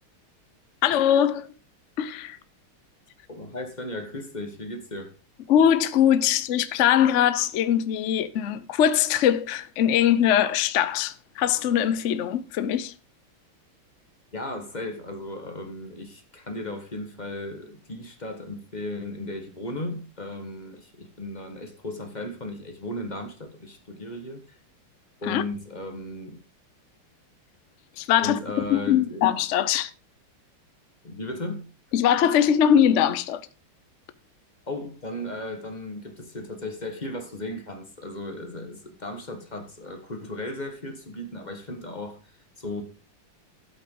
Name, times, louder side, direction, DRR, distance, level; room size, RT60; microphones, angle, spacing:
voice 1, 0.8-1.5 2.0-2.4 5.5-12.9 25.3-25.4 28.0-28.4 28.7-29.9 31.9-33.4, left 10 dB, 90° left, 0.6 m, -21 dB
voice 2, 3.3-5.1 14.3-24.6 25.2-26.4 28.2-29.2 31.0-31.7 34.7-42.8, left 1 dB, 25° left, 1.3 m, -36 dB
12.0 x 8.2 x 3.8 m
omnidirectional pair, 2.3 m